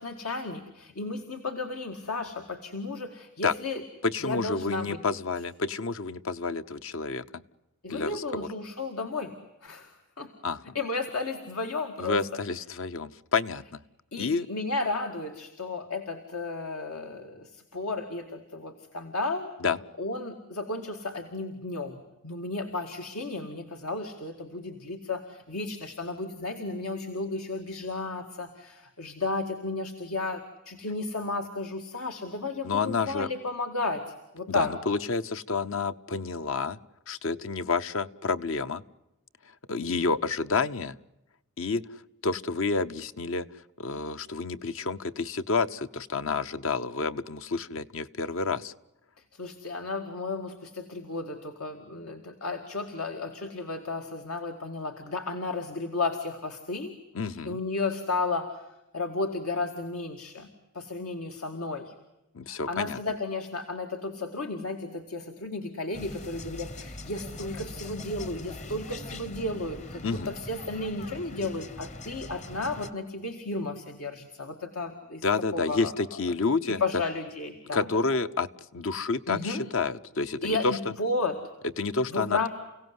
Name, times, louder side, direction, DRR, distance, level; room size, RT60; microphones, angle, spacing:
voice 1, 0.0-3.8 4.2-5.0 7.8-9.4 9.6-10.3 10.7-12.2 14.1-19.6 20.0-34.8 49.3-56.9 57.4-58.7 58.9-60.5 60.7-61.9 62.5-75.2 75.5-75.9 76.2-76.3 76.7-77.9 79.3-79.7 80.4-81.4 82.1-82.5, left 3 dB, 85° left, 5 dB, 2.1 m, -33 dB
voice 2, 4.0-7.2 7.9-8.5 10.4-10.7 12.0-13.8 14.2-14.5 19.6-19.8 32.6-33.3 34.5-36.8 37.1-38.8 39.7-41.0 41.6-41.8 42.2-43.5 43.8-48.7 57.1-57.6 62.3-63.0 70.0-70.3 75.2-76.8 77.7-80.8 81.8-82.5, left 4 dB, 65° left, 12 dB, 0.9 m, -29 dB
sound 1, 65.9-72.9, left 2 dB, 30° left, 1.0 m, -42 dB
30.0 x 17.0 x 9.6 m, 0.94 s
head